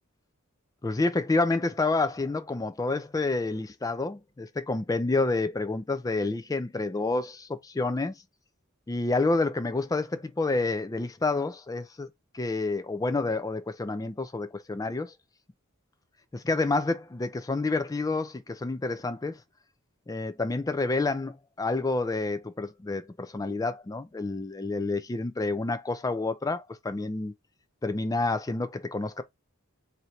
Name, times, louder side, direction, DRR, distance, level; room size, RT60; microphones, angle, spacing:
voice 1, 0.8-8.2 8.9-12.1 12.3-15.1 16.3-19.4 20.1-27.3 27.8-29.2, left 3 dB, 15° left, 0.3 m, -29 dB
3.1 x 2.7 x 4.1 m
head